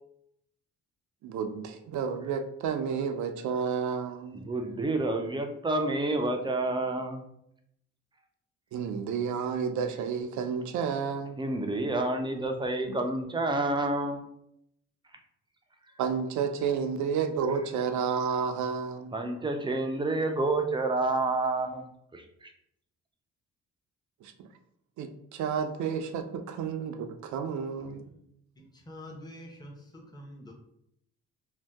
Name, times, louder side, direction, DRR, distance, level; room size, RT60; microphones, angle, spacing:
voice 1, 1.2-4.5 8.7-11.4 12.9-13.0 16.0-19.1 24.2-24.5 25.0-28.0, right 6 dB, 70° right, 7 dB, 0.5 m, -31 dB
voice 2, 4.3-7.2 11.4-14.2 19.1-21.8 22.1-22.2, right 2 dB, 15° right, 4 dB, 0.4 m, -29 dB
voice 3, 28.9-30.5, left 1 dB, 15° left, -1 dB, 0.8 m, -45 dB
2.6 x 2.2 x 3.4 m, 0.75 s
cardioid pair, 90°, 30 cm